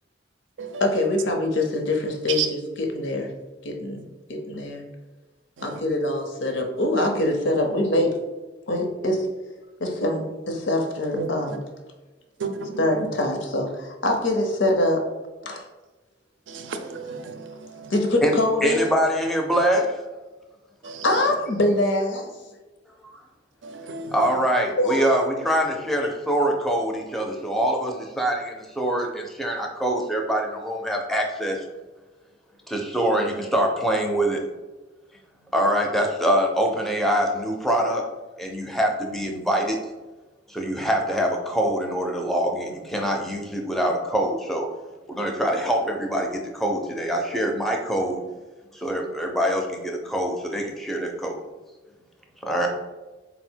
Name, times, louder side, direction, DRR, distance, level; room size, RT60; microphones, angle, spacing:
voice 1, 0.8-3.3 3.6-4.0 4.3-4.8 5.6-8.2 8.7-9.3 9.8-11.6 12.8-15.1 15.4-15.7 17.9-18.9 21.0-22.3 24.8-25.1, left 1 dB, 80° left, 0.7 m, -24 dB
voice 2, 12.4-12.8 16.5-17.9 23.6-24.1, right 6 dB, 80° right, 0.5 m, -32 dB
voice 3, 18.6-20.0 23.0-23.1 24.1-31.6 32.7-34.4 35.5-38.0 38.4-39.8 40.5-44.7 45.1-48.2 48.7-51.4 52.4-52.7, right 1 dB, ahead, 0.4 m, -24 dB
4.0 x 2.0 x 4.3 m
head